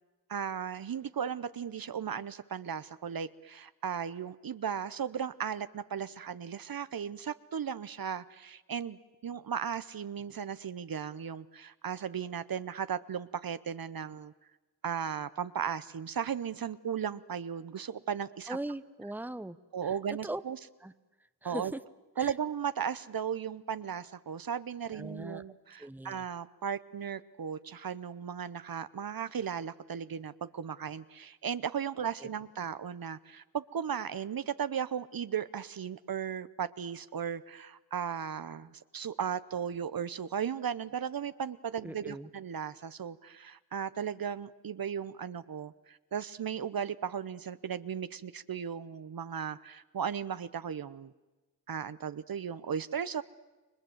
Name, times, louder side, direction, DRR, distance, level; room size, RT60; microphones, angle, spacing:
voice 1, 0.3-14.3 14.8-18.6 19.7-20.6 21.4-21.7 22.2-51.1 51.7-53.2, right 8 dB, 60° right, 14 dB, 0.8 m, -36 dB
voice 2, 18.5-19.6 19.8-20.4 20.8-20.9 21.4-21.8 22.2-22.3 24.9-25.4 25.8-26.2 32.2-32.3 41.8-42.3, right 1 dB, 5° right, 13 dB, 0.9 m, -40 dB
30.0 x 23.0 x 7.9 m, 1.2 s
cardioid pair, 60°, 39 cm